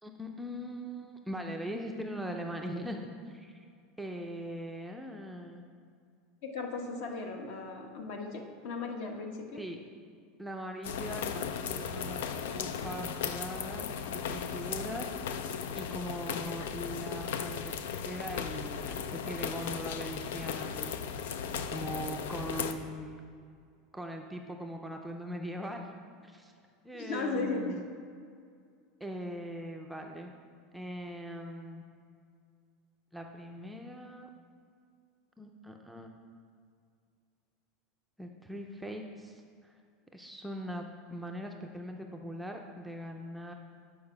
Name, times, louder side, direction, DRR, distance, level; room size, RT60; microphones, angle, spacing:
voice 1, 0.0-3.7 4.0-5.6 9.5-9.8 10.4-15.1 15.7-21.0 21.7-23.2 23.9-25.9 26.2-26.5 26.8-27.8 29.0-30.3 30.7-31.8 33.1-34.3 35.4-36.2 38.2-39.8 40.1-40.8 41.1-43.5, equal, ahead, 2 dB, 0.4 m, -41 dB
voice 2, 6.4-9.6 26.9-27.8, left 3 dB, 60° left, 3 dB, 1.2 m, -36 dB
sound 1, 10.8-22.7, left 7 dB, 90° left, 0.5 m, -36 dB
8.5 x 4.8 x 5.9 m, 2.2 s
supercardioid pair, 160°, 0 cm